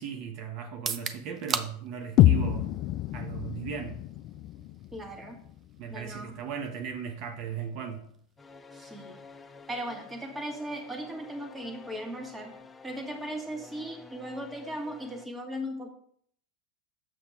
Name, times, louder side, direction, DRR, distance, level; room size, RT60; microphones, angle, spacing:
voice 1, 0.0-2.7 3.1-4.0 5.8-8.1, right 7 dB, 55° right, 5 dB, 0.9 m, -37 dB
sound 1, 0.7-14.5, right 6 dB, 30° right, 0.6 m, -44 dB
sound 2, 2.2-6.2, left 13 dB, 50° left, 0.3 m, -27 dB
voice 2, 4.9-5.4 5.9-6.4 8.7-9.2 9.7-12.5 12.8-15.9, equal, 10° right, 3 dB, 1.5 m, -37 dB
sound 3, 8.4-15.3, left 4 dB, 15° left, 0.7 m, -50 dB
7.1 x 5.7 x 3.5 m, 0.62 s
hypercardioid pair, 115°, 0 cm